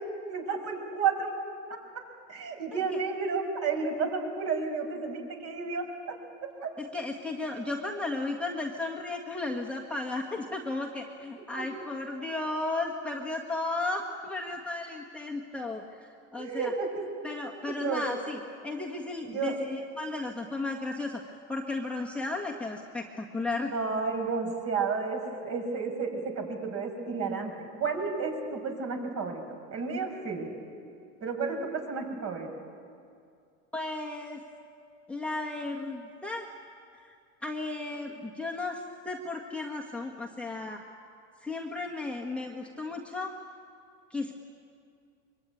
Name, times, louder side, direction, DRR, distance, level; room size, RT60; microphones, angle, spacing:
voice 1, 0.3-1.3 1.7-1.8 2.3-6.2 6.6-6.7 11.6-11.7 16.4-17.0 17.6-18.0 19.3-19.6 23.7-29.4 29.7-30.5 31.2-32.5, right 5 dB, 40° right, 3 dB, 5.6 m, -32 dB
voice 2, 6.8-16.7 17.2-21.2 21.5-23.7 31.5-31.6 33.7-34.4 35.1-36.5 37.0-37.1 37.4-40.8 41.4-43.3 44.1-44.3, left 2 dB, 5° left, -2 dB, 1.7 m, -34 dB
24.0 x 23.5 x 9.2 m, 2.3 s
supercardioid pair, 130°, 37 cm